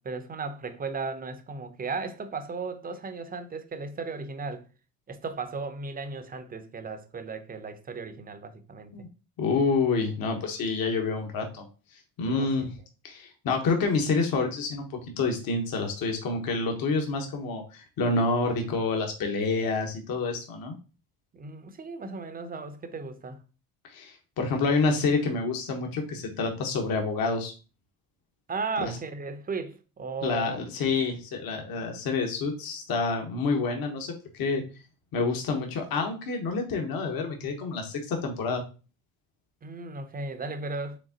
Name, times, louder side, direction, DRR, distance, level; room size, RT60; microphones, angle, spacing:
voice 1, 0.0-4.6 5.1-8.9 12.2-12.7 21.3-23.4 28.5-30.6 39.6-41.0, right 4 dB, 20° right, 0.6 m, -36 dB
voice 2, 9.4-11.6 12.2-12.7 13.0-20.7 23.9-27.5 28.8-28.9 30.2-34.6 35.1-38.6, left 4 dB, 50° left, 1.2 m, -28 dB
5.1 x 3.4 x 2.8 m
supercardioid pair, 90°, 45 cm